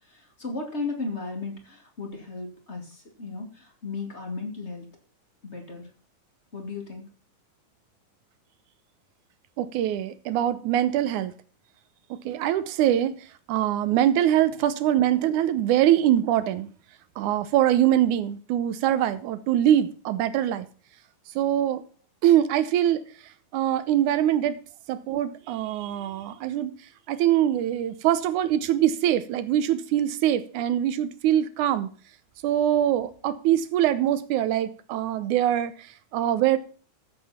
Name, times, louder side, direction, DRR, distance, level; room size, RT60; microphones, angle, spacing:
voice 1, 0.1-4.9 5.4-5.9 6.5-7.0, left 3 dB, 20° left, 2.3 m, -35 dB
voice 2, 9.6-11.3 12.1-13.2 13.5-16.7 17.2-20.7 21.4-21.8 22.2-23.0 23.5-24.6 24.9-26.7 27.1-31.9 32.4-36.6, right 11 dB, 75° right, 2.1 m, -23 dB
15.0 x 7.7 x 4.3 m
omnidirectional pair, 3.9 m